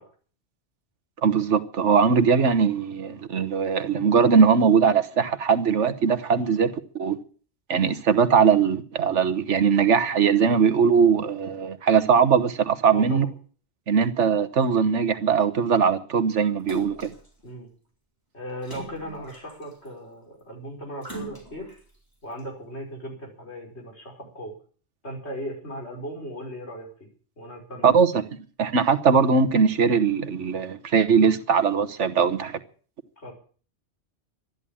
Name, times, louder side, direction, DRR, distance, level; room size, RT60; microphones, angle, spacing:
voice 1, 1.2-6.7 7.0-7.2 7.7-13.3 13.9-17.1 27.8-28.2 28.6-32.6, right 6 dB, 85° right, 1.5 m, -20 dB
voice 2, 12.8-13.3 17.4-17.7 18.3-21.7 22.2-24.5 25.0-27.1 27.4-28.0 33.2-33.3, equal, 70° left, 5.7 m, -37 dB
Splash splatter, 16.7-17.3 18.6-19.9 21.0-21.8 22.4-22.5, right 1 dB, 15° left, 4.2 m, -40 dB
13.0 x 10.5 x 8.8 m
omnidirectional pair, 1.2 m